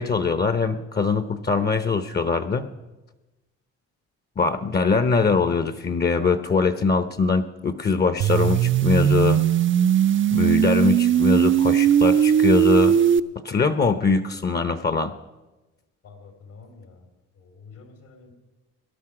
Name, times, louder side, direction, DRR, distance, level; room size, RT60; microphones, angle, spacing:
voice 1, 0.0-2.7 4.4-9.4 10.3-13.0 13.4-15.1, left 4 dB, 35° left, 11 dB, 0.8 m, -22 dB
sound 1, 8.2-13.2, right 10 dB, 40° right, 0.5 m, -19 dB
voice 2, 16.0-17.0 17.4-18.3, left 4 dB, 80° left, 5 dB, 3.3 m, -47 dB
18.5 x 11.5 x 4.9 m, 1.1 s
cardioid pair, 90°, 30 cm